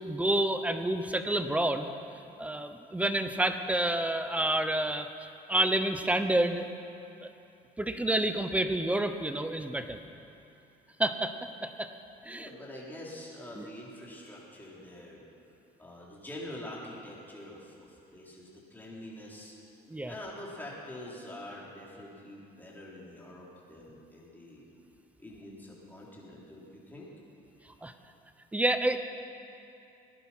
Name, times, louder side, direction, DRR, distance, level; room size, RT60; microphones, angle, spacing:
voice 1, 0.0-1.9 2.4-6.7 7.2-7.3 7.8-10.0 11.0-11.9 12.2-12.5 13.5-13.7 19.9-20.1 27.8-27.9 28.5-29.0, right 1 dB, 10° right, 8 dB, 0.9 m, -29 dB
voice 2, 12.2-15.3 15.8-19.5 20.0-24.7 25.2-27.1 27.5-27.6, left 1 dB, 10° left, -5 dB, 3.8 m, -45 dB
19.0 x 11.0 x 5.8 m, 2.7 s
cardioid pair, 110°, 17 cm